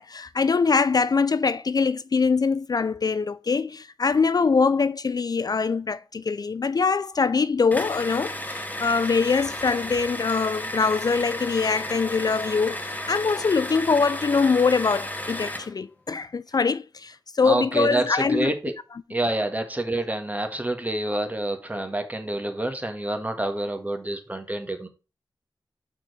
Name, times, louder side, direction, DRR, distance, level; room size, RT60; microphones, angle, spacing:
voice 1, 0.0-18.5, left 5 dB, 50° left, 0.3 m, -23 dB
sound 1, 7.7-15.7, left 1 dB, 20° left, 1.1 m, -33 dB
voice 2, 17.4-18.7 19.1-24.9, right 1 dB, 20° right, 1.5 m, -27 dB
6.0 x 4.4 x 4.8 m
cardioid pair, 55°, 8 cm